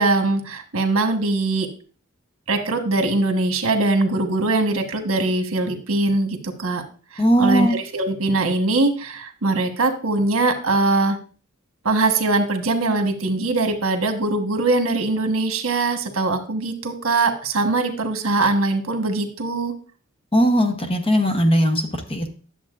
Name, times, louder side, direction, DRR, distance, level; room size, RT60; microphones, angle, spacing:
voice 1, 0.0-1.7 2.5-6.8 7.1-11.2 11.8-19.7, right 2 dB, 80° right, 5 dB, 1.2 m, -21 dB
voice 2, 7.2-7.8 20.3-22.3, equal, 25° left, 5 dB, 0.9 m, -19 dB
10.5 x 7.0 x 2.5 m, 0.39 s
head